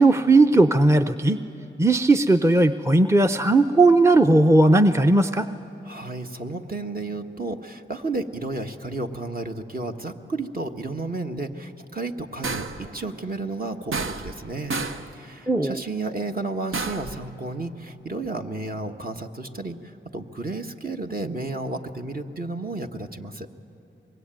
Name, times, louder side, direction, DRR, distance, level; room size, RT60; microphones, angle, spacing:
voice 1, 0.0-1.4 1.8-5.5 15.5-15.8, right 2 dB, 15° right, 7 dB, 0.7 m, -17 dB
voice 2, 5.8-14.8 15.1-23.5, right 2 dB, 45° right, 3 dB, 1.6 m, -32 dB
sound 1, 12.4-12.9 13.9-14.4 14.7-15.1 16.7-17.2, right 4 dB, 80° right, 1.0 m, -30 dB
24.5 x 22.5 x 9.2 m, 3.0 s
cardioid pair, 45°, 21 cm